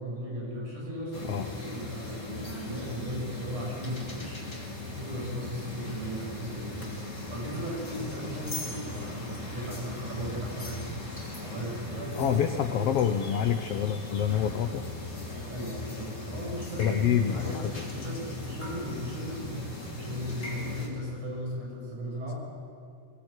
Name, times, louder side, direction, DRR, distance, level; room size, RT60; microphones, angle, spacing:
voice 1, 0.0-12.8 15.5-19.6 19.9-22.4, equal, 70° right, -3 dB, 7.9 m, -37 dB
sound 1, 1.1-20.9, left 2 dB, 25° left, 3.5 m, -39 dB
voice 2, 12.2-14.8 16.8-17.7, left 9 dB, 75° left, 6 dB, 1.4 m, -27 dB
23.0 x 17.0 x 8.3 m, 2.3 s
omnidirectional pair, 3.7 m